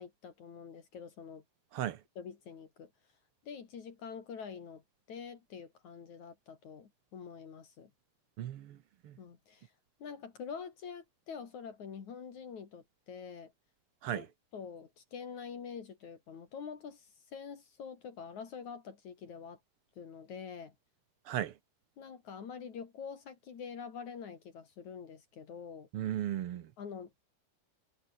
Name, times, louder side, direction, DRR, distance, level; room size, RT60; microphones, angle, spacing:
voice 1, 0.0-1.4 2.2-2.9 3.5-4.8 5.1-7.9 9.2-9.7 10.0-13.5 14.2-14.3 14.5-19.6 20.0-20.7 22.0-25.9 26.8-27.2, left 6 dB, 65° left, 4.1 m, -46 dB
voice 2, 8.4-8.8 9.0-9.2 14.0-14.3 21.2-21.5 25.9-26.7, right 11 dB, 65° right, 1.5 m, -36 dB
omnidirectional pair, 3.6 m